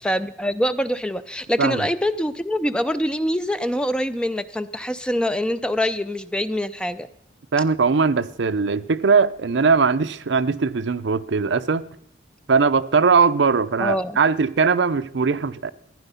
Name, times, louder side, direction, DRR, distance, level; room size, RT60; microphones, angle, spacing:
voice 1, 0.0-7.1 13.8-14.2, equal, 5° left, 0.4 m, -24 dB
voice 2, 1.6-1.9 7.5-11.8 12.5-15.7, right 5 dB, 70° right, 0.5 m, -20 dB
15.0 x 9.9 x 5.6 m
head